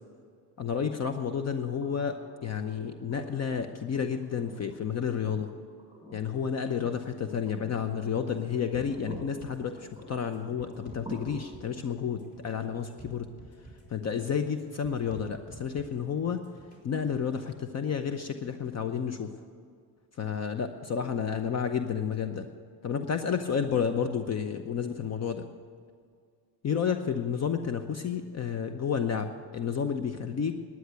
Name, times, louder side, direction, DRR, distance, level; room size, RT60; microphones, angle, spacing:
voice 1, 0.6-2.2 2.4-5.5 6.1-13.3 13.9-16.4 16.8-19.3 20.2-22.5 22.8-25.5 26.6-29.3 29.5-30.5, left 7 dB, 40° left, 8 dB, 0.8 m, -31 dB
sound 1, 1.8-15.8 17.5-17.6, left 1 dB, 5° right, 4.4 m, -50 dB
sound 2, 8.7-17.2, right 2 dB, 20° left, 3.8 m, -52 dB
11.5 x 9.4 x 8.1 m, 2.2 s
cardioid pair, 95°, 40 cm